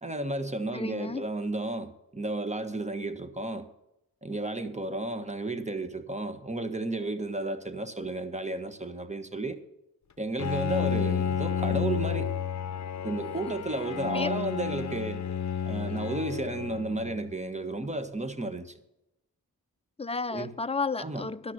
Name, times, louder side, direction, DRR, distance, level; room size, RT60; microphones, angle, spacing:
voice 1, 0.0-3.7 4.2-9.6 10.2-12.3 13.0-15.2 15.6-18.7 20.3-20.5 21.0-21.3, right 2 dB, 20° right, 1.5 m, -33 dB
voice 2, 0.7-1.2 14.1-14.3 20.0-21.5, left 4 dB, 15° left, 0.6 m, -32 dB
Bowed string instrument, 10.4-17.5, left 7 dB, 50° left, 0.8 m, -31 dB
11.5 x 6.0 x 9.1 m
cardioid pair, 60°, 37 cm